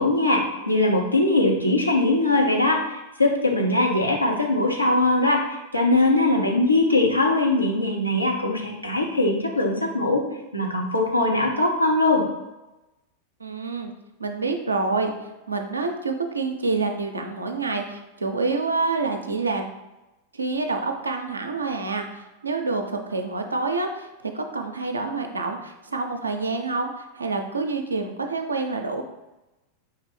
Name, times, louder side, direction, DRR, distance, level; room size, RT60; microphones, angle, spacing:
voice 1, 0.0-10.2 10.5-12.3, left 2 dB, 85° left, 0 dB, 0.7 m, -21 dB
voice 2, 13.4-13.9 14.2-15.1 15.5-19.7 20.3-24.1 24.3-29.0, right 3 dB, 80° right, 4 dB, 0.5 m, -27 dB
4.8 x 3.3 x 3.1 m, 1.0 s
figure-of-eight pair, 90°, 0 cm